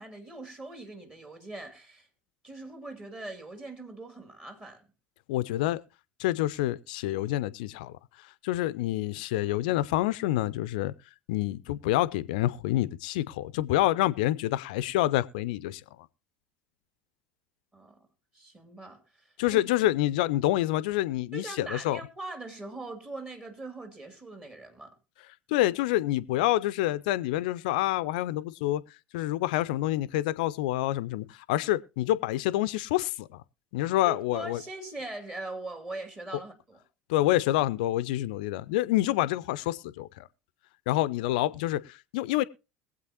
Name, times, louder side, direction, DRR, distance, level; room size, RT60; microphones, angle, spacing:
voice 1, 0.0-2.1 2.4-4.8 17.7-18.0 18.3-19.6 21.3-24.9 34.1-36.8, right 2 dB, 25° right, 2.6 m, -41 dB
voice 2, 5.3-5.8 6.2-7.9 8.4-10.9 11.3-15.8 19.4-22.0 25.5-28.8 29.1-33.3 33.7-34.6 37.1-40.3 40.9-42.5, left 15 dB, 60° left, 0.5 m, -27 dB
22.0 x 8.0 x 2.8 m
figure-of-eight pair, 70°, 5 cm